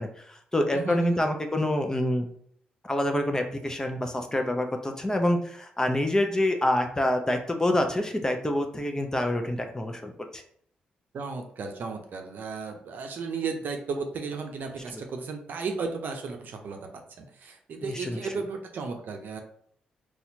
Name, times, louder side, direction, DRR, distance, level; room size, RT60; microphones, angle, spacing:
voice 1, 0.0-2.3 2.8-10.4 14.9-15.0 17.8-18.3, left 1 dB, 20° left, 4 dB, 0.6 m, -27 dB
voice 2, 0.7-1.2 11.1-16.8 17.2-19.4, right 4 dB, 65° right, 4 dB, 0.6 m, -34 dB
4.1 x 2.4 x 2.7 m, 0.63 s
supercardioid pair, 50°, 3 cm